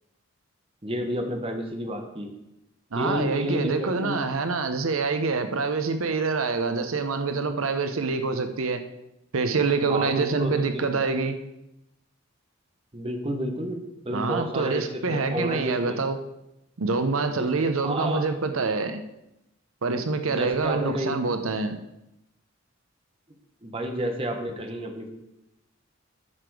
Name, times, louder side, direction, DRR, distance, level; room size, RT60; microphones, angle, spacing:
voice 1, 0.8-2.3 2.9-4.3 9.9-10.9 12.9-16.0 17.3-17.5 17.7-18.3 18.6-18.7 20.3-21.2 23.6-25.1, equal, 25° right, 4 dB, 1.1 m, -30 dB
voice 2, 2.9-8.8 9.3-11.4 14.1-16.2 16.8-19.0 19.8-21.8, right 4 dB, 90° right, 8 dB, 0.8 m, -26 dB
9.8 x 6.8 x 4.8 m, 0.88 s
head